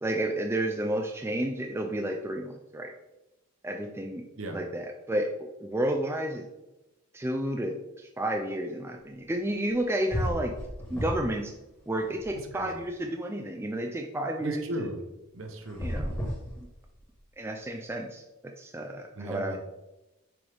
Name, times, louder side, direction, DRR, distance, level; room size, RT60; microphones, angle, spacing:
voice 1, 0.0-2.9 3.6-4.2 4.5-5.3 5.6-6.4 7.1-10.5 10.9-11.5 11.9-14.9 15.8-16.1 17.4-19.6, right 1 dB, 10° right, 3 dB, 0.4 m, -31 dB
sound 1, 9.7-9.8 10.1-11.4 11.8-12.9 15.6-17.2, equal, 10° left, 1.6 m, -34 dB
voice 2, 12.5-12.8 14.4-15.0 15.3-15.9 19.1-19.6, right 1 dB, 60° right, 4 dB, 1.0 m, -36 dB
6.1 x 4.7 x 3.5 m, 0.98 s
head